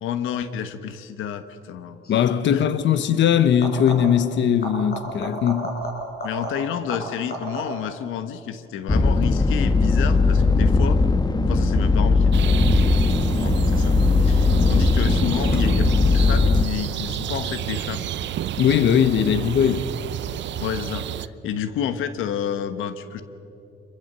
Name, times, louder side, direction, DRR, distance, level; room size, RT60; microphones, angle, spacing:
voice 1, 0.0-2.0 2.5-2.6 6.2-11.0 11.5-18.1 19.7-19.8 20.6-23.2, left 9 dB, 90° left, 1.3 m, -30 dB
sound 1, 2.0-2.3 3.5-4.3 4.6-8.0 13.4-14.0 15.5-15.6, equal, 50° left, 5.3 m, -33 dB
voice 2, 2.1-5.7 18.6-19.8, left 8 dB, 65° left, 1.0 m, -19 dB
sound 2, 8.9-16.6, left 3 dB, 20° left, 1.1 m, -19 dB
sound 3, 12.3-21.3, right 11 dB, 65° right, 0.7 m, -30 dB
25.5 x 22.0 x 6.8 m
cardioid pair, 90°, 20 cm